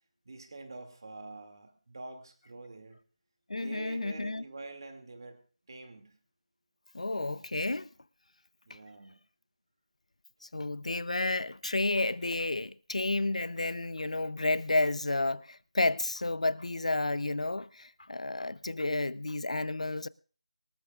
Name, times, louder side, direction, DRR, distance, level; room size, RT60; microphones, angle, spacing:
voice 1, 0.2-3.0 3.6-5.4 5.7-6.2 8.6-9.2, right 2 dB, 40° right, 2.5 m, -46 dB
voice 2, 3.5-4.4 6.9-7.9 8.7-8.8 10.5-20.1, left 2 dB, 90° left, 0.7 m, -31 dB
24.0 x 13.5 x 2.5 m
figure-of-eight pair, 175°, 3 cm